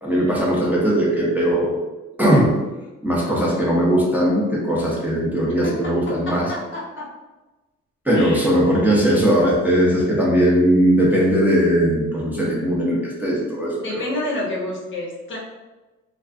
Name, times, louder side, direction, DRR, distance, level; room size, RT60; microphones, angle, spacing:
voice 1, 0.0-1.8 2.2-2.5 3.0-6.4 8.0-14.1, equal, 5° right, -6 dB, 0.6 m, -19 dB
voice 2, 5.6-7.1 8.1-8.5 13.8-15.4, left 1 dB, 40° left, -2 dB, 0.7 m, -29 dB
2.3 x 2.3 x 2.4 m, 1.1 s
cardioid pair, 90°, 30 cm